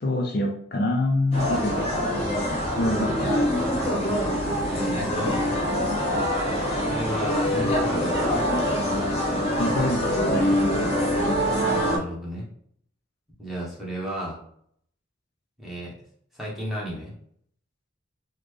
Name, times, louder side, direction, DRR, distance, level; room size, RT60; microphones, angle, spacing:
voice 1, 0.0-1.9 2.8-3.4 9.6-10.5, left 2 dB, 50° left, 1 dB, 0.5 m, -26 dB
sound 1, 1.3-12.0, equal, 30° left, 0.9 m, -24 dB
voice 2, 4.6-5.5 6.9-8.4 11.8-12.5 13.4-14.4 15.6-15.9 16.3-17.1, equal, ahead, -6 dB, 1.0 m, -33 dB
4.0 x 2.1 x 3.2 m, 0.66 s
head